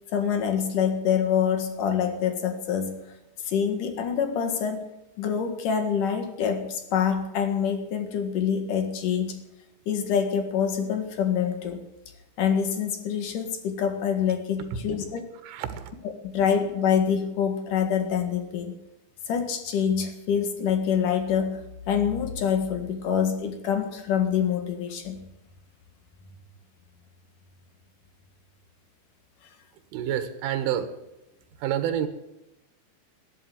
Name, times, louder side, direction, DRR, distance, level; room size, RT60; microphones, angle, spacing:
voice 1, 0.1-2.9 3.4-4.8 5.2-9.4 9.9-11.8 12.4-15.2 16.2-18.7 19.3-21.6 21.9-25.2, left 7 dB, 55° left, 7 dB, 2.6 m, -26 dB
voice 2, 15.4-15.9 29.9-30.9 31.6-32.1, right 10 dB, 80° right, 9 dB, 3.9 m, -28 dB
13.5 x 11.5 x 9.2 m, 0.94 s
omnidirectional pair, 5.6 m